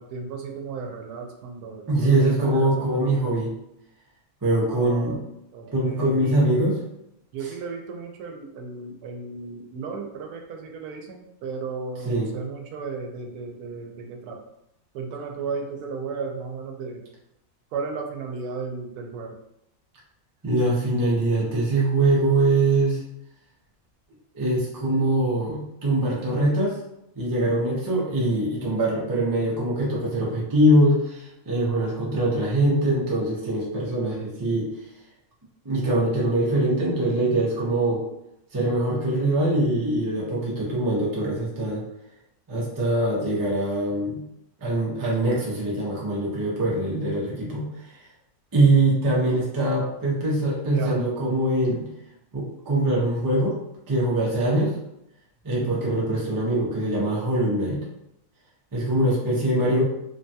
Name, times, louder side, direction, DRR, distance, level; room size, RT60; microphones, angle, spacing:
voice 1, 0.0-3.4 4.5-5.2 5.5-6.6 7.3-14.4 14.9-17.0 17.7-19.3 50.7-51.0 55.6-55.8, right 4 dB, 85° right, 3 dB, 1.1 m, -35 dB
voice 2, 1.9-3.5 4.4-5.2 5.7-6.8 7.4-7.5 12.0-12.3 20.4-23.0 24.3-26.7 27.2-34.7 35.6-38.0 38.5-41.8 42.5-44.2 44.6-47.6 48.5-51.8 52.3-53.6 53.9-54.7 55.4-57.8 58.7-59.8, right 1 dB, 30° right, -5 dB, 0.4 m, -23 dB
3.2 x 2.2 x 2.7 m, 0.81 s
omnidirectional pair, 1.6 m